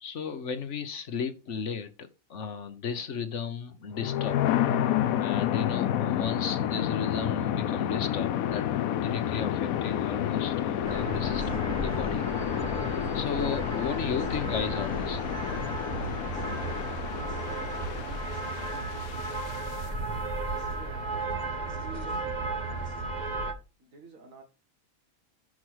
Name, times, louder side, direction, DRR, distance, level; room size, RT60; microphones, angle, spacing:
voice 1, 0.0-4.4 5.2-12.2 13.1-15.2, left 6 dB, 60° left, 10 dB, 1.2 m, -35 dB
sound 1, 3.9-19.8, left 11 dB, 85° left, 1.1 m, -30 dB
sound 2, 10.8-23.5, right 3 dB, 35° right, 1.2 m, -34 dB
voice 2, 20.7-21.2 21.8-23.1 23.8-24.4, right 4 dB, 75° right, 4 dB, 2.2 m, -49 dB
6.3 x 4.8 x 6.2 m, 0.30 s
omnidirectional pair, 1.4 m